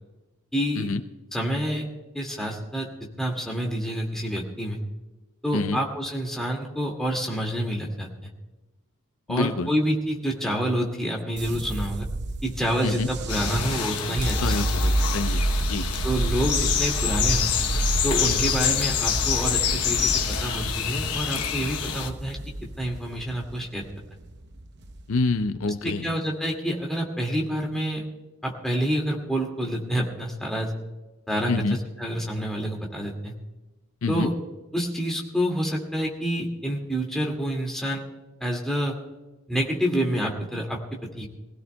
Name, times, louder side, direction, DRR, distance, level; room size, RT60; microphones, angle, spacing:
voice 1, 0.5-0.9 1.3-1.9 2.1-2.9 3.2-4.8 5.4-8.1 9.3-12.1 12.4-14.7 16.0-17.5 18.0-22.4 22.8-23.9 25.8-28.0 28.4-30.7 31.3-31.6 32.0-33.3 34.1-34.3 34.7-38.0 38.4-39.0 39.5-41.3, equal, ahead, -2 dB, 2.1 m, -28 dB
voice 2, 9.3-9.7 12.8-13.1 14.4-15.9 25.1-26.1 31.5-31.8 34.0-34.3, left 3 dB, 65° left, 10 dB, 0.6 m, -27 dB
sound 1, 11.4-25.6, right 1 dB, 50° right, 0.8 m, -29 dB
sound 2, 13.3-22.1, left 8 dB, 90° left, 0.9 m, -27 dB
24.5 x 16.5 x 2.2 m, 1.1 s
head